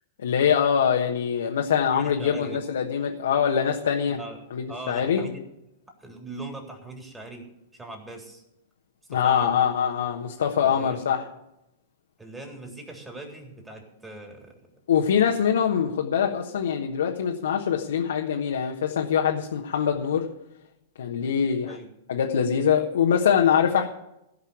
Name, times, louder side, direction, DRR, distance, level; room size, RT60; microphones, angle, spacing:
voice 1, 0.2-4.2 4.5-5.3 9.1-11.2 14.9-20.3 21.0-21.8 22.1-23.9, left 8 dB, 70° left, 1 dB, 1.3 m, -23 dB
voice 2, 1.9-2.6 4.1-4.4 4.7-5.4 6.0-7.4 7.7-8.4 9.1-9.5 10.6-11.0 12.2-14.5 21.7-21.9, right 2 dB, 10° right, 1 dB, 3.5 m, -40 dB
16.5 x 5.6 x 9.5 m, 0.85 s
figure-of-eight pair, 100°, 0 cm